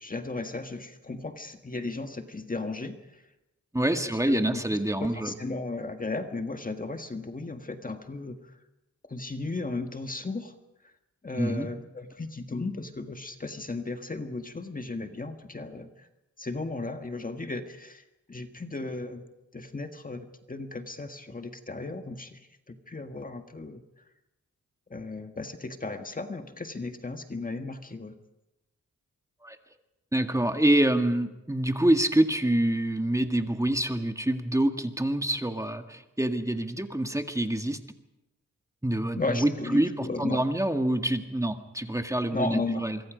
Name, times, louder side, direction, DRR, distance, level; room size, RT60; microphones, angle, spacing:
voice 1, 0.0-3.2 4.0-4.6 5.0-8.5 9.1-10.5 10.8-10.9 11.2-16.1 16.4-19.2 19.5-23.8 24.9-28.2 39.2-40.5 42.3-42.9, left 3 dB, 30° left, 6 dB, 1.7 m, -35 dB
voice 2, 3.7-5.3 11.3-11.7 29.4-29.6 30.1-37.8 38.8-43.0, right 1 dB, 10° right, 6 dB, 1.9 m, -26 dB
25.0 x 24.0 x 5.2 m, 0.95 s
cardioid pair, 75°, 29 cm